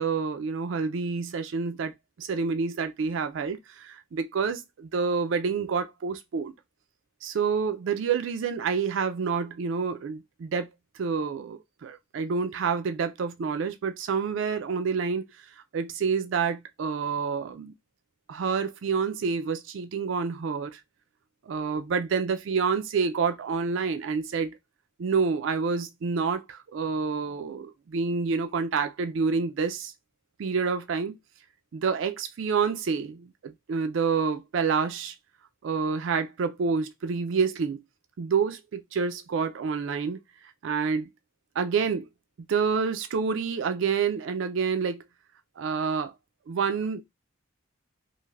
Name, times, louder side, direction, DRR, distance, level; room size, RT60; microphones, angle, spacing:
voice 1, 0.0-1.9 2.2-6.5 7.2-10.7 11.0-15.3 15.7-17.7 18.3-20.8 21.5-24.5 25.0-29.9 30.4-31.2 31.7-35.1 35.6-37.8 38.2-40.2 40.6-41.1 41.6-42.1 42.5-45.0 45.6-46.1 46.5-47.0, right 5 dB, 70° right, 0.4 m, -28 dB
3.2 x 2.5 x 2.3 m
head